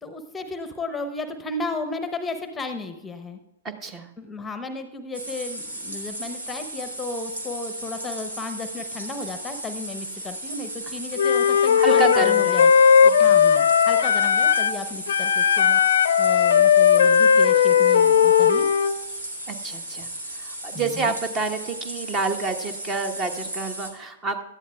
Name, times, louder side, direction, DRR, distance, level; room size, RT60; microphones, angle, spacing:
voice 1, 0.0-3.4 4.2-12.7 13.2-15.8 16.2-18.7 20.7-21.1, left 3 dB, 10° left, 9 dB, 0.9 m, -34 dB
voice 2, 3.6-4.1 11.8-12.6 13.0-13.3 19.5-24.4, right 4 dB, 25° right, 8 dB, 1.1 m, -28 dB
sound 1, 5.1-23.9, right 1 dB, 75° right, 2.3 m, -35 dB
Wind instrument woodwind instrument, 11.2-14.8 15.1-19.0, left 7 dB, 60° left, 0.5 m, -17 dB
17.0 x 12.0 x 2.3 m, 0.99 s
figure-of-eight pair, 110°, 0 cm